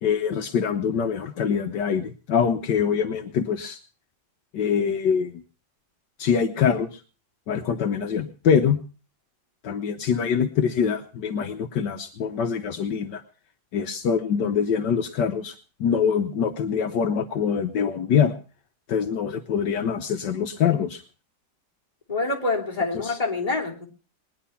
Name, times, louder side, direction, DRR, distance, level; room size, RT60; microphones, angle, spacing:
voice 1, 0.0-3.8 4.5-5.4 6.2-7.0 7.5-8.8 9.6-13.2 13.7-15.5 15.8-18.3 18.9-21.0 23.0-23.2, left 7 dB, 75° left, 7 dB, 1.5 m, -24 dB
voice 2, 22.1-23.9, left 3 dB, 20° left, -2 dB, 3.2 m, -26 dB
20.5 x 10.5 x 5.6 m, 0.37 s
omnidirectional pair, 1.9 m